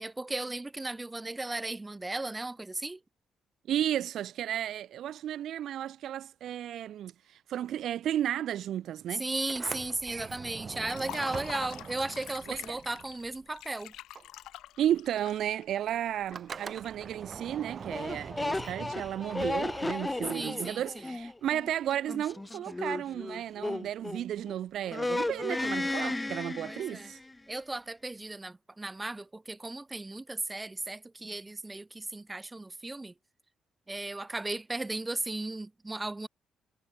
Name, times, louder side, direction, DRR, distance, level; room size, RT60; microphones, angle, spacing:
voice 1, 0.0-3.0 9.1-13.9 20.3-20.8 26.7-27.1 27.5-33.1 33.9-36.3, right 2 dB, 15° right, 3.6 m, -36 dB
voice 2, 3.7-9.3 12.5-12.8 14.8-27.2, right 11 dB, 70° right, 0.5 m, -33 dB
Sliding door, 9.4-13.7 13.9-20.3, right 6 dB, 45° right, 5.2 m, -44 dB
Liquid, 10.8-16.9, left 14 dB, 85° left, 2.3 m, -46 dB
sound 1, 17.9-24.6 24.9-27.3, left 2 dB, 15° left, 3.7 m, -34 dB
cardioid pair, 90°, 0 cm